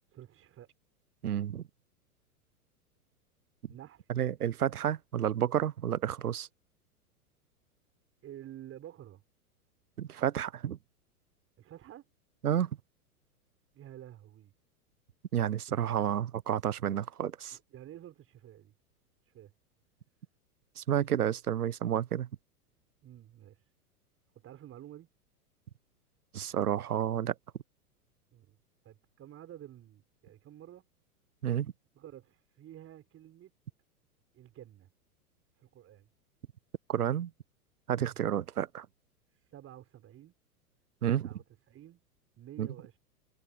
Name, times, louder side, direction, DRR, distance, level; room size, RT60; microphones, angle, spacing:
voice 1, 0.1-0.7 3.7-4.1 8.2-9.2 11.6-12.0 13.7-14.5 15.7-15.8 16.8-17.0 17.5-18.7 19.2-19.5 23.0-23.7 24.3-25.1 28.3-28.6 28.8-30.8 31.9-33.5 34.3-34.9 35.6-36.1 39.3-40.4 41.0-42.0 42.4-43.0, right 12 dB, 30° right, 6.3 m, -51 dB
voice 2, 1.2-1.6 4.1-6.5 10.0-10.8 12.4-12.7 15.3-17.6 20.8-22.3 26.3-27.3 31.4-31.7 36.9-37.3 37.9-38.9 41.0-41.2 42.6-42.7, right 10 dB, 75° right, 1.1 m, -30 dB
figure-of-eight pair, 100°, 45 cm